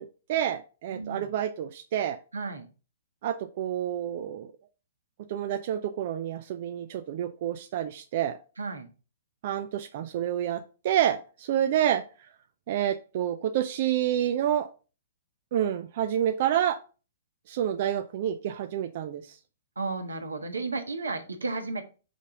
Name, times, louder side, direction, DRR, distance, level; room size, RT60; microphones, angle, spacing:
voice 1, 0.0-2.2 3.2-4.5 5.3-8.4 9.4-12.1 12.7-14.7 15.5-16.8 17.5-19.4, right 10 dB, 50° right, 7 dB, 0.5 m, -28 dB
voice 2, 0.9-1.3 2.3-2.7 8.6-8.9 19.8-21.8, right 3 dB, 85° right, 4 dB, 1.3 m, -33 dB
5.3 x 5.0 x 3.7 m, 0.35 s
figure-of-eight pair, 120°, 0 cm